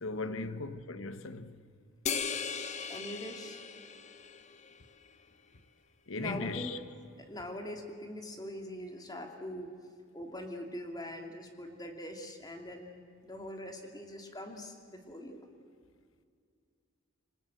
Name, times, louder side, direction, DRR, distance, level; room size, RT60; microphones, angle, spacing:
voice 1, 0.0-1.6 6.1-6.8, left 3 dB, 80° left, 1.2 m, -38 dB
sound 1, 2.1-4.8, left 6 dB, 35° left, 1.1 m, -38 dB
voice 2, 2.9-3.6 6.2-6.7 7.2-15.4, left 1 dB, 20° left, 2.7 m, -43 dB
27.0 x 26.0 x 7.9 m
head